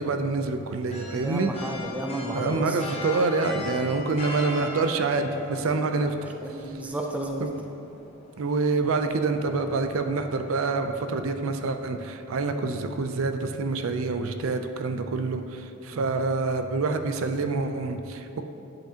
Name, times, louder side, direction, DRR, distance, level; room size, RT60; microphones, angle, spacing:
voice 1, 0.0-1.5 2.3-6.1 7.4-7.6 8.4-18.4, right 3 dB, 70° right, 7 dB, 0.4 m, -27 dB
sound 1, 0.9-11.2, left 3 dB, 30° left, 0.8 m, -40 dB
voice 2, 1.2-2.8 6.4-7.5 15.9-16.1, right 1 dB, 5° right, 1 dB, 0.4 m, -32 dB
10.0 x 5.7 x 2.8 m, 2.8 s
head